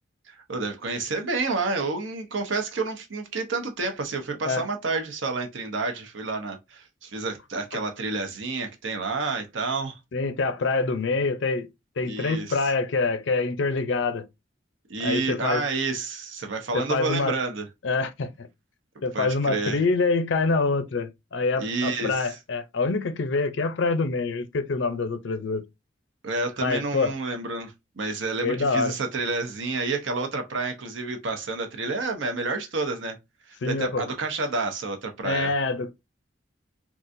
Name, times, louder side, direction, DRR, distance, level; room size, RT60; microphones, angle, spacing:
voice 1, 0.3-10.0 12.0-12.6 14.9-17.7 19.1-19.8 21.6-22.4 26.2-33.2 33.5-35.5, right 3 dB, 70° right, 0.7 m, -29 dB
voice 2, 10.1-11.7 12.0-14.2 15.0-15.6 16.7-17.4 17.8-18.5 19.0-25.6 26.6-27.1 28.4-28.9 33.6-34.0 35.2-35.9, left 3 dB, 65° left, 0.5 m, -25 dB
3.8 x 2.4 x 2.5 m
head